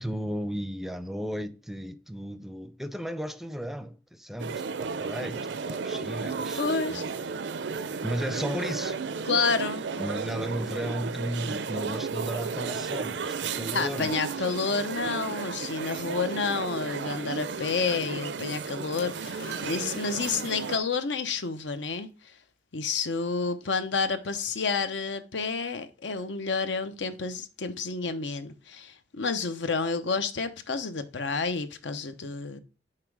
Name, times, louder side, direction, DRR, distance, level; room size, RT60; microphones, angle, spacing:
voice 1, 0.0-6.6 6.9-7.0 8.0-9.0 10.0-14.4, equal, ahead, 0.5 m, -35 dB
sound 1, 4.4-20.8, right 5 dB, 75° right, 0.5 m, -33 dB
voice 2, 6.5-7.0 9.2-9.8 13.7-22.1 22.7-32.6, left 4 dB, 85° left, 0.8 m, -30 dB
Splash splatter, 19.0-20.8 21.7-21.8, left 3 dB, 50° left, 2.0 m, -47 dB
5.8 x 4.4 x 4.7 m
head